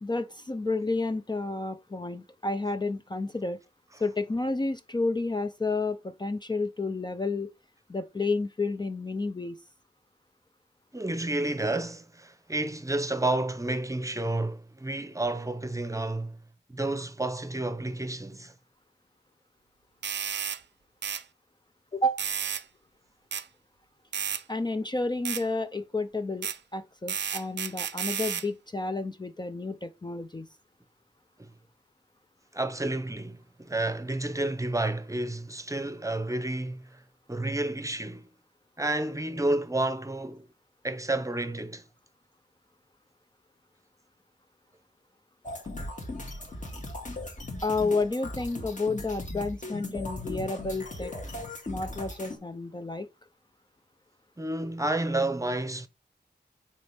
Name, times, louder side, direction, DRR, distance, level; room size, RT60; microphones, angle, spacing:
voice 1, 0.0-3.6 4.0-7.5 7.9-9.6 21.9-22.2 24.5-30.5 47.6-51.1 51.7-53.1, left 3 dB, 25° left, 0.5 m, -30 dB
voice 2, 10.9-16.4 16.7-18.5 31.4-31.5 32.5-37.0 37.3-38.3 38.8-40.5 40.8-41.8 54.4-55.9, right 2 dB, 20° right, 0.8 m, -30 dB
sound 1, 20.0-20.6 21.0-21.2 22.2-22.6 23.3-23.5 24.1-24.4 25.3-25.4 26.4-26.6 27.1-28.5, right 8 dB, 90° right, 0.5 m, -32 dB
sound 2, 45.4-52.4, left 1 dB, 45° left, 2.1 m, -38 dB
6.6 x 4.4 x 3.4 m
wide cardioid pair, 85°, 18 cm